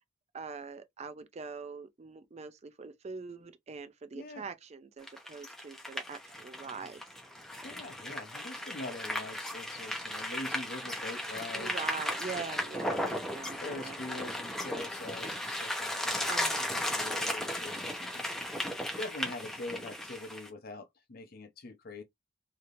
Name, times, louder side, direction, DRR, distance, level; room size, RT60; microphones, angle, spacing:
voice 1, 0.3-7.0 11.5-14.3 16.3-17.0, right 5 dB, 35° right, 0.4 m, -43 dB
voice 2, 4.1-4.5 7.6-11.9 12.8-18.3 19.0-22.0, left 2 dB, 50° left, 0.7 m, -44 dB
sound 1, 5.0-20.5, left 1 dB, 5° left, 0.7 m, -36 dB
3.3 x 2.8 x 2.5 m
head